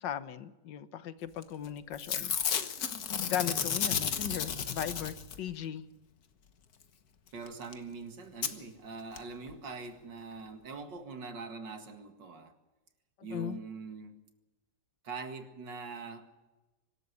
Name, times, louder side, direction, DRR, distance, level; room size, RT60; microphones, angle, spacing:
voice 1, 0.0-2.4 3.3-5.8 13.3-13.6, left 10 dB, 85° left, 14 dB, 1.7 m, -37 dB
Packing tape duct tape / Tearing, 1.4-1.7 1.9-5.5 7.5-7.6 7.7-7.8 8.4-8.5 9.2-9.3 9.5-9.6, left 7 dB, 60° left, 1.7 m, -32 dB
voice 2, 7.3-12.5 13.2-14.1 15.0-16.3, right 4 dB, 90° right, 7 dB, 2.7 m, -43 dB
24.5 x 13.0 x 9.6 m, 1.1 s
omnidirectional pair, 1.9 m